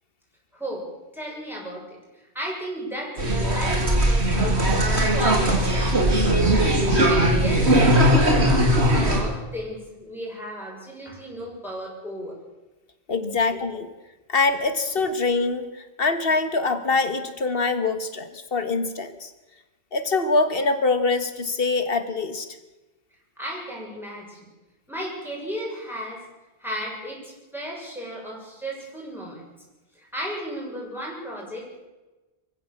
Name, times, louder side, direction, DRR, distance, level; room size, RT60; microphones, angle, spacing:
voice 1, 0.5-0.9 1.1-2.0 2.3-4.6 5.1-6.2 6.8-12.3 23.4-24.5 24.9-26.2 26.6-29.4 29.9-31.9, equal, ahead, -3 dB, 7.0 m, -34 dB
sound 1, 3.2-9.2, right 1 dB, 80° right, 3.7 m, -19 dB
voice 2, 13.1-13.9 14.3-15.6 16.0-19.3 19.9-22.5, left 3 dB, 60° left, 10 dB, 1.8 m, -24 dB
23.5 x 15.5 x 7.2 m, 1.1 s
omnidirectional pair, 1.1 m